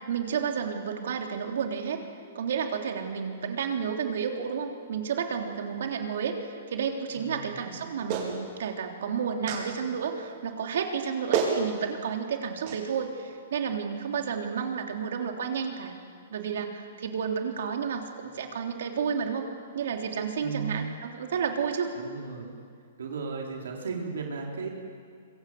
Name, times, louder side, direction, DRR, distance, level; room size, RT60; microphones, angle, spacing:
voice 1, 0.1-2.0 2.3-8.3 8.6-15.9 16.3-19.5 19.7-21.9, right 6 dB, 70° right, 3 dB, 3.4 m, -31 dB
voice 2, 7.1-7.5 20.4-20.9 22.0-22.5 23.0-24.7, right 5 dB, 90° right, 0 dB, 4.5 m, -35 dB
Clapping, 8.1-8.3 9.5-9.6 10.9-11.0 11.3-11.6 12.7-12.8, right 7 dB, 35° right, 4.8 m, -27 dB
25.5 x 23.5 x 8.0 m, 2.2 s
hypercardioid pair, 165°, 0 cm